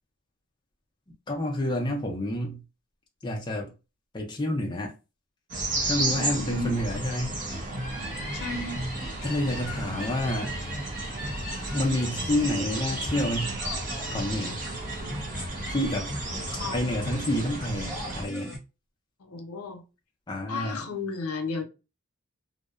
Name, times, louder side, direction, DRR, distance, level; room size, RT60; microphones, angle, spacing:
voice 1, 1.3-2.6 3.2-3.7 4.1-4.9 5.9-7.4 9.2-10.6 11.7-13.6 14.1-14.6 15.7-16.1 16.7-18.5 20.3-20.8, left 1 dB, 20° left, 0.4 m, -29 dB
sound 1, 5.5-18.3, right 2 dB, 35° right, 0.5 m, -33 dB
voice 2, 6.1-6.8 8.3-8.9 15.0-15.2 16.6-16.8 19.2-19.8 20.5-21.6, left 3 dB, 85° left, 0.6 m, -34 dB
sound 2, 7.3-18.6, equal, 5° right, 1.1 m, -38 dB
2.6 x 2.0 x 2.3 m
head